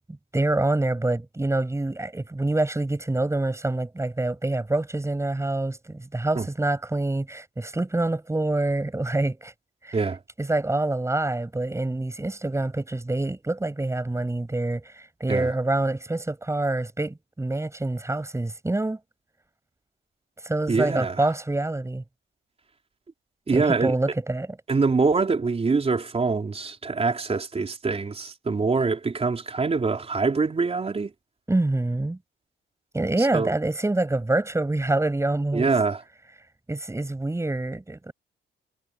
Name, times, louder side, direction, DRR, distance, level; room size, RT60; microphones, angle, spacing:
voice 1, 0.3-9.5 9.8-10.0 10.4-19.0 20.4-22.0 23.5-24.5 31.5-32.2 32.9-35.7 36.7-38.1, right 2 dB, 15° right, 7.6 m, -26 dB
voice 2, 20.7-21.3 23.5-23.9 24.7-31.1 33.2-33.5 35.5-36.0, right 4 dB, 30° right, 4.2 m, -24 dB
cardioid pair, 90°, 20 cm